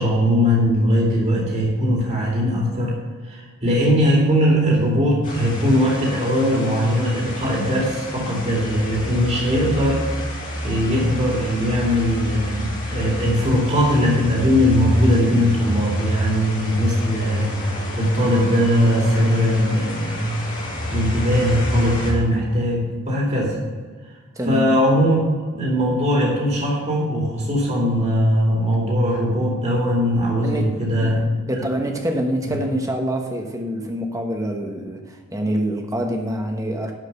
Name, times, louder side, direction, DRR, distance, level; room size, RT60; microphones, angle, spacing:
voice 1, 0.0-3.0 3.2-10.0 10.6-20.3 20.9-23.6 24.5-25.2 25.5-31.2, equal, 30° right, -3 dB, 2.5 m, -20 dB
sound 1, 5.2-22.1, equal, 40° left, 2.7 m, -27 dB
voice 2, 24.4-24.8 30.4-30.7 31.0-36.9, equal, 15° right, 3 dB, 1.2 m, -26 dB
11.5 x 5.2 x 6.8 m, 1.4 s
head